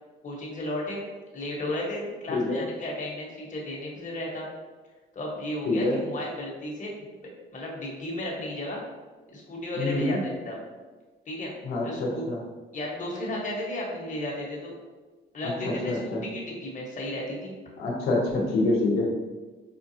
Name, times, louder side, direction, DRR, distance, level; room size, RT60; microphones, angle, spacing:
voice 1, 0.2-1.0 1.3-4.5 5.1-8.8 9.3-10.6 11.3-11.5 11.8-12.2 12.7-14.7 15.3-17.5, left 1 dB, 40° left, -3 dB, 1.1 m, -34 dB
voice 2, 2.3-2.6 5.7-6.0 9.8-10.2 11.6-12.4 15.9-16.2 17.8-19.1, left 2 dB, 80° left, -4 dB, 0.8 m, -26 dB
5.0 x 2.3 x 2.7 m, 1.3 s
cardioid pair, 90°, 20 cm